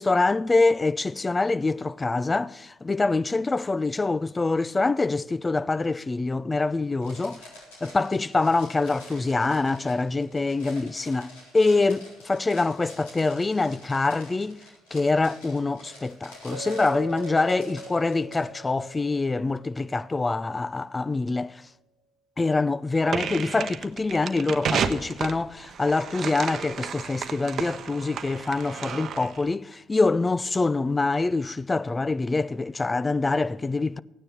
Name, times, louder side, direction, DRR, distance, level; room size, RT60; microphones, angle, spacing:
voice 1, 0.0-7.4 7.8-14.6 14.9-21.6 22.4-34.0, left 3 dB, 25° left, 0.5 m, -25 dB
sound 1, 7.0-18.4, left 1 dB, 80° left, 4.0 m, -48 dB
Chink clink, 16.5-20.5, right 2 dB, 85° right, 0.6 m, -42 dB
sound 2, 23.1-29.4, right 7 dB, 55° right, 0.8 m, -32 dB
16.0 x 9.6 x 5.9 m
hypercardioid pair, 50°, 0 cm